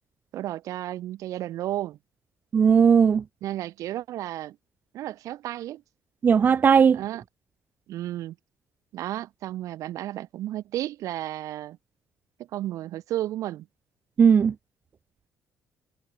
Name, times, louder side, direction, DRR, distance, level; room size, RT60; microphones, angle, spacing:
voice 1, 0.3-2.0 3.4-4.6 4.9-5.8 6.9-7.2 7.9-8.4 8.9-11.8 12.5-13.7, right 14 dB, 70° right, 2.4 m, -33 dB
voice 2, 2.5-3.2 6.2-7.0 14.2-14.5, right 6 dB, 35° right, 0.9 m, -17 dB
cardioid pair, 145°, 6 cm